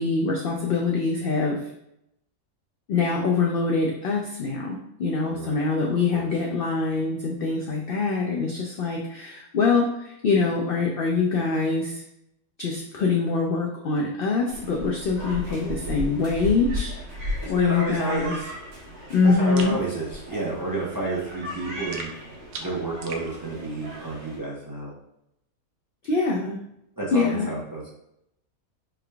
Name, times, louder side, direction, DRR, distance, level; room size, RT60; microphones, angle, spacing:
voice 1, 0.0-1.6 2.9-12.0 12.6-16.9 17.5-18.3 19.1-19.8 26.0-26.6 27.1-27.5, left 4 dB, 75° left, -1 dB, 0.5 m, -24 dB
sound 1, 14.5-24.4, left 1 dB, 55° right, 1.0 m, -36 dB
voice 2, 15.6-16.0 17.4-18.5 19.4-22.1 22.6-24.9 27.0-27.9, right 2 dB, 25° right, -5 dB, 0.5 m, -31 dB
sound 2, 19.6-19.8 21.9-23.3, right 3 dB, 70° right, 0.5 m, -38 dB
3.7 x 3.3 x 2.2 m, 0.81 s
omnidirectional pair, 1.5 m